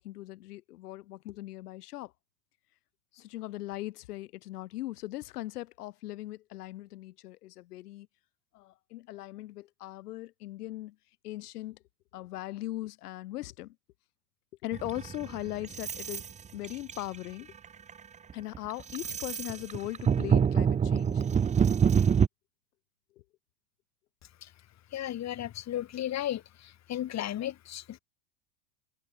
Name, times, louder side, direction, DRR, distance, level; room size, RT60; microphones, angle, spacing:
voice 1, 0.0-2.1 3.1-8.1 8.5-11.0 11.2-11.8 12.1-13.8 14.6-16.2 16.5-17.5 18.3-21.2 23.2-23.3, left 16 dB, 80° left, 2.2 m, -39 dB
sound 1, 14.7-16.3 16.6-17.2 17.6-17.9 18.3-22.3, right 7 dB, 15° right, 0.7 m, -26 dB
voice 2, 24.9-28.0, left 12 dB, 35° left, 2.8 m, -35 dB
supercardioid pair, 110°, 45 cm